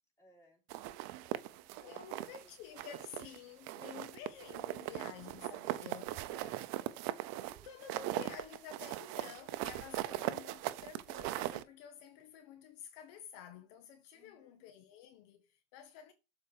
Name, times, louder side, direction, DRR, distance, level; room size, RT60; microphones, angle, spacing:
voice 1, 0.2-0.6 1.1-2.9 6.3-8.2 14.1-14.7, left 1 dB, 10° left, 4.2 m, -63 dB
sound 1, 0.7-2.4 2.8-3.4 3.7-11.6, right 16 dB, 55° right, 0.7 m, -40 dB
voice 2, 1.8-6.2 7.6-16.1, left 8 dB, 65° left, 1.3 m, -51 dB
7.3 x 4.5 x 4.5 m
supercardioid pair, 120°, 32 cm